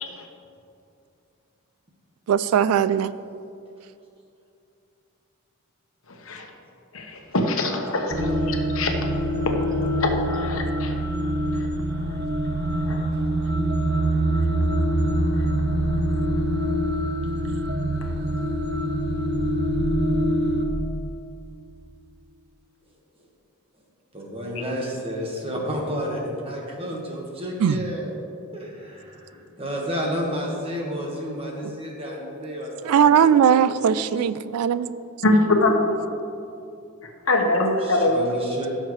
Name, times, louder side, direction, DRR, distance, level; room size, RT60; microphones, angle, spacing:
voice 1, 2.3-3.1 27.6-27.7 32.9-34.9, right 8 dB, 85° right, 15 dB, 0.3 m, -19 dB
voice 2, 6.9-8.9 9.5-9.6 10.0-10.9 12.9-13.0 35.2-35.8 37.3-38.2, left 2 dB, 70° left, 2 dB, 1.2 m, -23 dB
sound 1, 8.1-20.6, right 1 dB, 50° right, 0.9 m, -24 dB
voice 3, 24.1-28.1 28.5-34.2 37.8-38.7, equal, 25° right, -1 dB, 1.5 m, -31 dB
15.5 x 6.5 x 3.2 m, 2.6 s
head